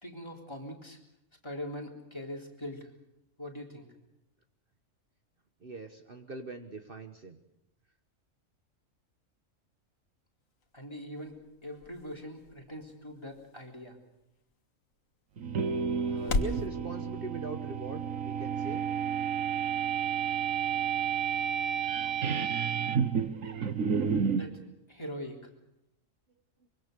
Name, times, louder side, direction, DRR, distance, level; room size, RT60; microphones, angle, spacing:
voice 1, 0.0-1.0 1.4-2.9 3.4-3.9 10.7-14.0 24.3-24.6 24.9-25.4, left 1 dB, 20° left, 0 dB, 3.7 m, -42 dB
voice 2, 5.6-7.4 16.0-18.8, right 3 dB, 45° right, 6 dB, 1.4 m, -42 dB
sound 1, 10.4-16.7, left 3 dB, 80° left, 1.8 m, -39 dB
sound 2, 15.4-24.5, right 7 dB, 80° right, 1.6 m, -31 dB
24.0 x 23.5 x 6.8 m, 0.84 s
omnidirectional pair, 1.4 m